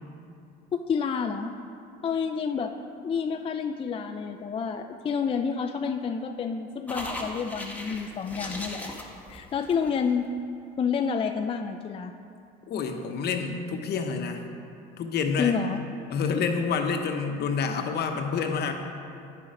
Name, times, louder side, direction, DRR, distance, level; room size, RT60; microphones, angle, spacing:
voice 1, 0.7-1.5 2.0-2.7 3.0-9.0 9.3-10.3 10.8-12.1 15.4-15.8, left 6 dB, 25° left, 6 dB, 0.4 m, -29 dB
sound 1, 6.9-10.2, left 1 dB, 5° left, 1.2 m, -38 dB
voice 2, 12.7-14.4 15.0-15.6 16.1-18.8, left 5 dB, 55° left, 5 dB, 0.9 m, -28 dB
9.2 x 5.7 x 5.0 m, 2.5 s
supercardioid pair, 90°, 21 cm